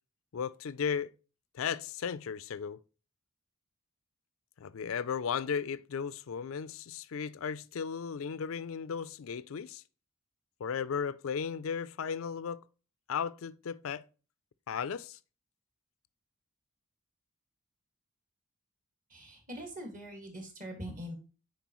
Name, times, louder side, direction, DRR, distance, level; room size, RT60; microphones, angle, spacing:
voice 1, 0.3-1.1 1.5-2.8 4.6-9.8 10.6-12.6 13.1-14.0 14.7-15.2, left 6 dB, 70° left, 0.4 m, -35 dB
voice 2, 19.1-21.1, equal, 40° right, 1.9 m, -43 dB
9.0 x 4.5 x 3.0 m
head